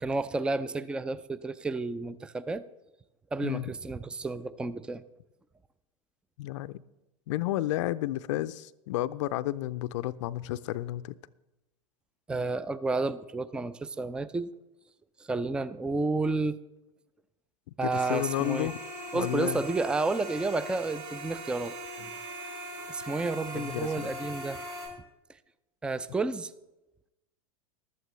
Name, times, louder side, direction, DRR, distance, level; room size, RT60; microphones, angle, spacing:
voice 1, 0.0-2.6 3.3-5.0 12.3-14.5 15.3-16.6 17.8-18.7 19.1-21.7 22.9-24.6 25.8-26.5, right 3 dB, 5° right, 17 dB, 0.4 m, -31 dB
voice 2, 6.4-6.8 7.3-11.2 17.8-18.8 19.1-19.6 23.5-24.2, left 15 dB, 55° left, 14 dB, 0.5 m, -31 dB
sound 1, 17.9-24.9, right 1 dB, 50° right, 4.4 m, -40 dB
15.5 x 12.0 x 3.2 m, 0.96 s
figure-of-eight pair, 90°, 18 cm